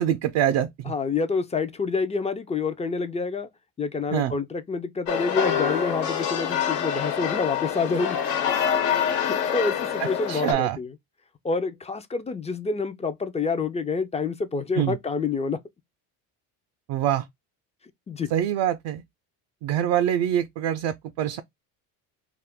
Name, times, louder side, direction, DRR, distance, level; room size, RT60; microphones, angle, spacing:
voice 1, 0.0-0.9 4.1-4.4 10.0-10.8 14.8-15.0 16.9-17.3 18.3-19.0 19.6-21.4, right 11 dB, 60° right, 0.5 m, -25 dB
voice 2, 0.9-3.5 3.8-8.2 9.3-10.9 11.4-15.6 18.1-18.3, left 4 dB, 15° left, 0.4 m, -27 dB
sound 1, 5.1-10.5, left 8 dB, 85° left, 1.2 m, -26 dB
2.5 x 2.4 x 3.5 m
supercardioid pair, 90°, 46 cm